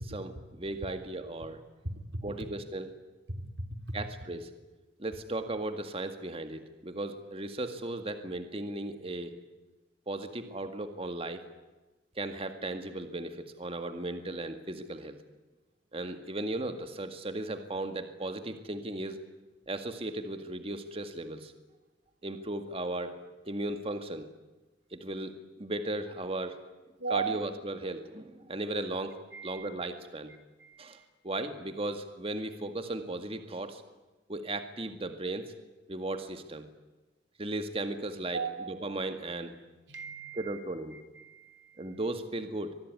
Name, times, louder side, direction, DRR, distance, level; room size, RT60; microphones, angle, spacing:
voice 1, 0.1-1.6 2.2-2.9 3.9-4.5 5.0-9.4 10.1-11.4 12.2-15.2 15.9-19.2 19.7-21.5 22.2-23.1 23.5-24.3 24.9-26.6 27.1-30.3 30.8-31.0 31.2-33.8 34.3-35.5 35.9-36.7 37.4-38.4 38.7-39.6 40.4-41.0 41.8-42.7, right 2 dB, 35° right, 7 dB, 2.0 m, -36 dB
voice 2, 1.8-2.2 3.3-3.5 3.7-4.0 27.0-27.3 29.3-29.7 30.6-31.1 38.3-38.9 39.9-40.6 40.9-42.0, right 4 dB, 90° right, 7 dB, 3.5 m, -37 dB
25.0 x 20.5 x 9.5 m, 1.1 s
head